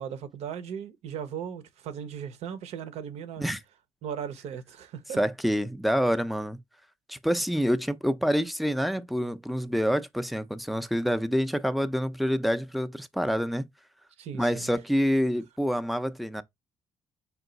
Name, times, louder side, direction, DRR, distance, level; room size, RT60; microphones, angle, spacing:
voice 1, 0.0-3.4 4.0-5.2 14.2-14.7, right 8 dB, 70° right, 0.8 m, -37 dB
voice 2, 5.2-6.6 7.1-13.7 14.3-16.4, equal, ahead, 0.4 m, -27 dB
4.5 x 2.4 x 3.8 m
cardioid pair, 100°, 11 cm